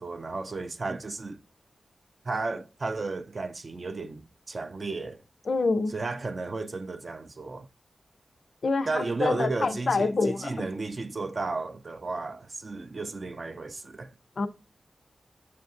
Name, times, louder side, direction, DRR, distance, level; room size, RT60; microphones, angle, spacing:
voice 1, 0.0-1.4 2.2-5.2 5.9-7.7 8.9-14.1, right 3 dB, 45° right, 0.4 m, -33 dB
voice 2, 5.5-5.9 8.6-10.5 14.4-14.5, left 3 dB, 60° left, 0.4 m, -26 dB
7.3 x 2.5 x 2.5 m
wide cardioid pair, 90°, 0 cm